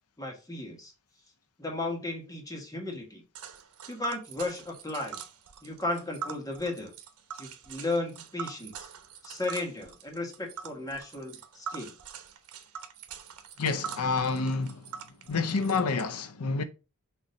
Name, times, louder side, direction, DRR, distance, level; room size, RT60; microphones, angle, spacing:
voice 1, 0.2-0.9 1.6-3.2 3.9-5.2 5.6-6.9 7.4-8.9 9.2-11.9, left 2 dB, 15° left, 1.6 m, -35 dB
Tick, 3.3-16.0, right 7 dB, 85° right, 1.0 m, -43 dB
voice 2, 13.6-14.9 15.3-16.6, left 4 dB, 80° left, 0.7 m, -28 dB
6.7 x 3.0 x 5.2 m
head